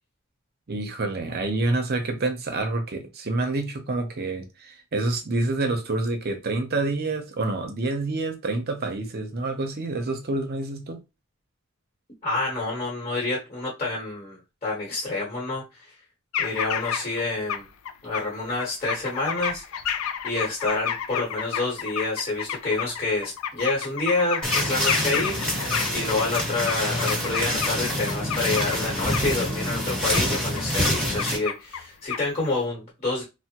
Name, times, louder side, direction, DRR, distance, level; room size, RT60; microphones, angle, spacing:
voice 1, 0.7-11.0, right 2 dB, 50° right, 0.6 m, -27 dB
voice 2, 12.2-15.8 16.4-17.7 18.0-19.6 20.2-25.6 25.9-33.2, left 2 dB, 30° left, 1.2 m, -28 dB
sound 1, 16.3-17.2 17.5-18.2 18.6-27.8 28.1-28.8 29.1-29.3 30.1-30.2 30.6-31.9 32.1-32.5, left 8 dB, 80° left, 0.4 m, -30 dB
sound 2, 24.4-31.4, equal, 5° left, 0.9 m, -26 dB
3.3 x 2.1 x 2.9 m
head